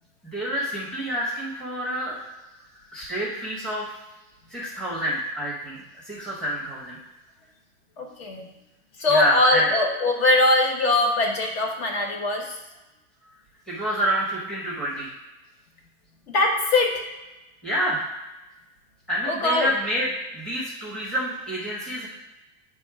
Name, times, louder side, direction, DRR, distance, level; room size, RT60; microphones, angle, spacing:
voice 1, 0.2-2.2 2.9-3.9 4.5-7.0 9.1-9.7 13.7-15.1 17.6-18.1 19.1-20.1 20.3-22.1, equal, ahead, -6 dB, 0.8 m, -27 dB
voice 2, 8.0-8.5 9.0-12.6 16.3-17.0 19.2-19.7, left 2 dB, 45° left, 2 dB, 1.2 m, -22 dB
8.5 x 3.3 x 4.7 m, 1.0 s
supercardioid pair, 175°, 42 cm